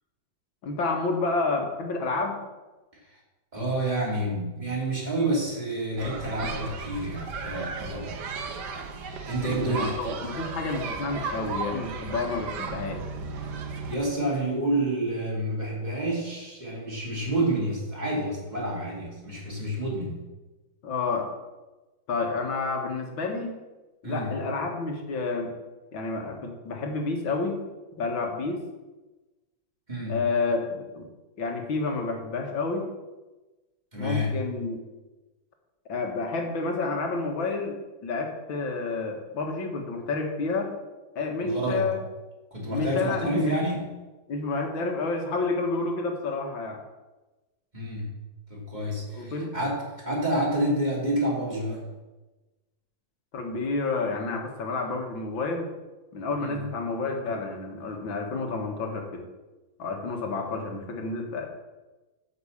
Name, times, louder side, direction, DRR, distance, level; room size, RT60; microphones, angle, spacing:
voice 1, 0.6-2.4 9.4-13.0 20.8-21.3 22.1-23.6 24.0-25.5 25.9-27.6 28.0-28.6 30.1-31.0 31.4-32.9 34.0-34.8 35.9-40.7 41.2-42.0 42.7-43.6 44.3-46.8 49.1-49.5 53.3-55.7 56.1-59.2 59.8-61.5, left 3 dB, 90° left, 2 dB, 2.4 m, -29 dB
voice 2, 3.5-8.3 9.2-9.9 13.9-20.2 24.0-24.3 29.9-30.2 33.9-34.3 41.4-41.9 42.5-43.9 47.7-48.1 48.5-51.9 56.4-56.6, right 1 dB, 20° right, -4 dB, 3.2 m, -29 dB
sound 1, 6.0-14.0, right 4 dB, 65° right, 1.5 m, -35 dB
9.7 x 6.1 x 7.2 m, 1.1 s
omnidirectional pair, 2.1 m